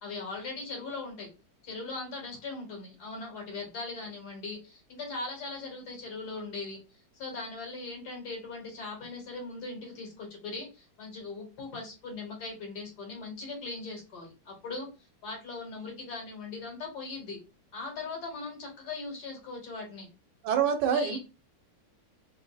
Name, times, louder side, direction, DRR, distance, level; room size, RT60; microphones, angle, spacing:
voice 1, 0.0-1.3 1.6-14.9 15.2-17.4 17.7-20.1 20.9-21.2, left 3 dB, 70° left, 1.6 m, -39 dB
voice 2, 20.4-21.2, right 7 dB, 80° right, 1.2 m, -26 dB
3.4 x 2.6 x 2.2 m
omnidirectional pair, 1.9 m